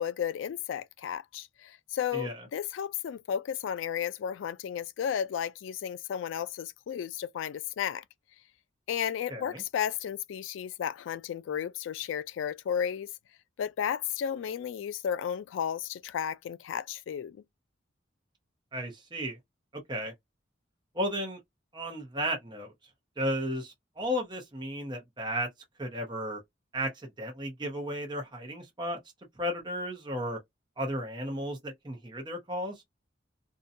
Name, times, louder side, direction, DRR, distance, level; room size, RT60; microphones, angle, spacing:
voice 1, 0.0-8.0 8.9-13.1 13.6-17.4, left 8 dB, 80° left, 0.3 m, -33 dB
voice 2, 2.1-2.5 9.3-9.6 18.7-19.4 19.9-20.1 20.9-21.4 21.7-22.7 23.2-25.5 25.8-26.4 26.7-29.0 29.4-30.4 30.8-32.7, equal, 25° right, 0.8 m, -34 dB
2.6 x 2.2 x 2.6 m
head